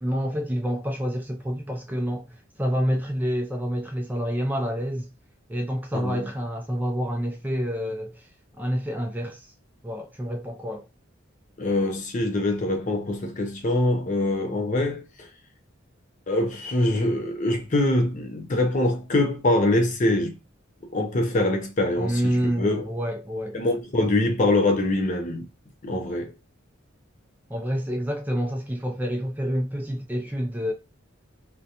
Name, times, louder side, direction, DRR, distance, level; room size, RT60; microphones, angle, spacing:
voice 1, 0.0-5.1 5.5-8.3 8.6-9.5 9.8-10.8 22.0-23.8 27.5-30.7, equal, 10° right, 0.4 m, -28 dB
voice 2, 11.6-15.0 16.3-20.4 20.9-22.2 22.6-22.8 23.5-25.5 25.8-26.3, left 1 dB, 40° left, 0.6 m, -24 dB
2.5 x 2.2 x 2.7 m
head